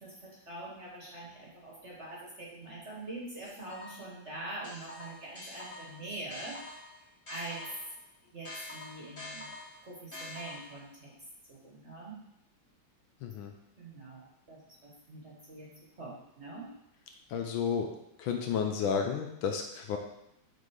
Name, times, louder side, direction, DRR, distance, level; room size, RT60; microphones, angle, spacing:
voice 1, 0.0-7.6 8.2-9.4 9.9-11.1 11.5-12.2 13.8-15.7 16.0-16.7, right 2 dB, 40° right, -3 dB, 1.3 m, -44 dB
sound 1, 3.5-4.2 4.6-8.0 8.4-10.9, left 2 dB, 35° left, 2.4 m, -46 dB
voice 2, 13.2-13.5 17.3-17.9 18.2-20.0, left 7 dB, 75° left, 3 dB, 1.4 m, -31 dB
6.7 x 3.8 x 4.7 m, 0.82 s
omnidirectional pair, 2.4 m